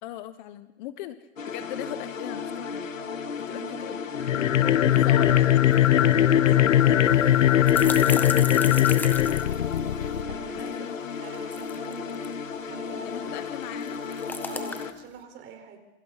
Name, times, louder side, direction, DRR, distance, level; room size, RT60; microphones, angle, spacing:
voice 1, 0.0-1.2 1.5-2.9 3.5-4.0 4.9-5.5 6.0-6.3 6.8-7.0 10.6-11.2 13.0-14.0, left 14 dB, 35° left, 11 dB, 1.3 m, -39 dB
sound 1, 1.4-14.9, left 5 dB, 90° left, 2.4 m, -34 dB
voice 2, 3.4-3.8 4.6-5.5 6.3-7.7 8.4-9.1 10.3-10.9 11.2-13.4 14.5-15.8, right 6 dB, 30° right, 5 dB, 4.7 m, -45 dB
sound 2, 4.2-10.4, left 11 dB, 75° left, 1.0 m, -20 dB
sound 3, 5.7-5.8 6.1-6.2 7.1-10.2 11.2-12.3 13.6-15.0, left 3 dB, 5° left, 1.2 m, -36 dB
27.5 x 27.5 x 4.2 m, 1.0 s
hypercardioid pair, 135°, 38 cm